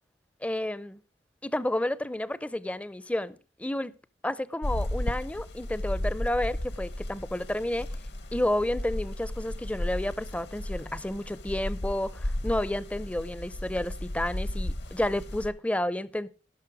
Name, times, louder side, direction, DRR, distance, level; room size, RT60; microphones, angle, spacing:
voice 1, 0.4-1.0 1.4-3.9 4.2-7.9 8.3-16.3, left 1 dB, 10° left, 0.5 m, -31 dB
sound 1, 4.6-15.5, left 1 dB, 65° left, 1.1 m, -34 dB
16.5 x 6.5 x 4.9 m
head